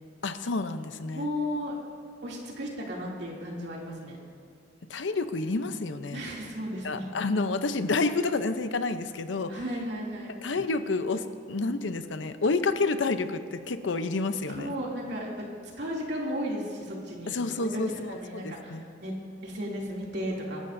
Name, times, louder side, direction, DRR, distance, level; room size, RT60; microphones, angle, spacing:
voice 1, 0.2-1.3 4.9-6.3 6.8-9.5 10.3-14.7 17.3-18.9, left 3 dB, 85° left, 9 dB, 0.7 m, -29 dB
voice 2, 1.1-1.7 2.2-4.2 6.1-7.1 9.5-10.3 14.5-15.5 15.8-17.8 18.1-19.1 19.4-20.6, equal, 70° right, -3 dB, 2.7 m, -34 dB
26.0 x 12.5 x 2.7 m, 2.4 s
head